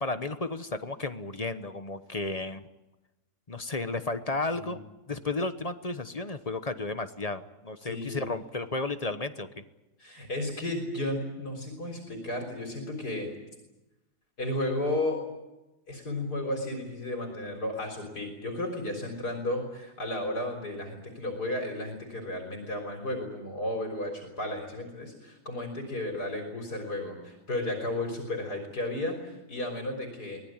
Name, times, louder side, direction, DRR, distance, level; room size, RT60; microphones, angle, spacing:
voice 1, 0.0-2.7 3.5-4.8 5.1-9.6, left 3 dB, 30° left, 10 dB, 1.0 m, -33 dB
voice 2, 7.8-8.3 10.0-13.3 14.4-15.3 15.9-30.4, left 1 dB, 85° left, 2 dB, 4.3 m, -33 dB
24.0 x 19.5 x 9.0 m, 1.0 s
omnidirectional pair, 1.7 m